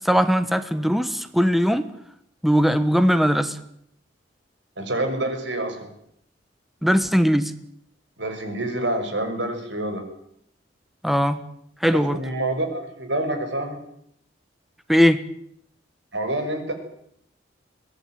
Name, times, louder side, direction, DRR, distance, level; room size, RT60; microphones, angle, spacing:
voice 1, 0.0-1.9 2.4-3.6 6.8-7.5 11.0-11.4 11.8-12.2 14.9-15.2, equal, ahead, 11 dB, 1.4 m, -19 dB
voice 2, 4.8-5.9 8.2-10.0 11.9-13.8 16.1-16.7, right 1 dB, 90° right, 6 dB, 6.1 m, -27 dB
22.5 x 18.5 x 9.4 m, 0.72 s
head